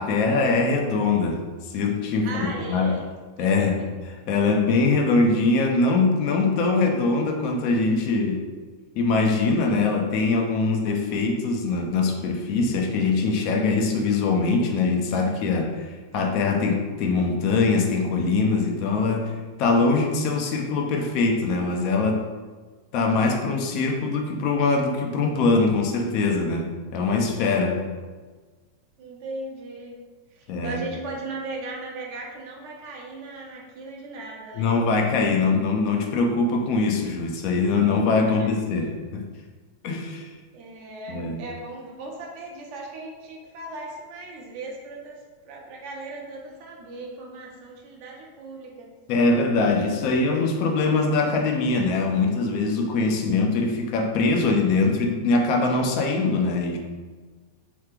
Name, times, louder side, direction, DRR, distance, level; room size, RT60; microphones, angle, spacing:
voice 1, 0.0-3.0 3.4-3.8 4.3-8.4 9.0-15.8 16.1-19.3 19.6-22.2 22.9-27.8 30.5-30.8 34.5-39.3 39.8-40.3 41.1-41.4 49.1-56.8, left 3 dB, 45° left, 2 dB, 0.5 m, -22 dB
voice 2, 2.2-3.0 3.4-3.7 29.0-30.0 30.3-34.7 38.4-38.5 40.5-48.9, right 2 dB, 45° right, -1 dB, 0.8 m, -37 dB
3.2 x 3.0 x 3.4 m, 1.4 s
figure-of-eight pair, 90°, 0 cm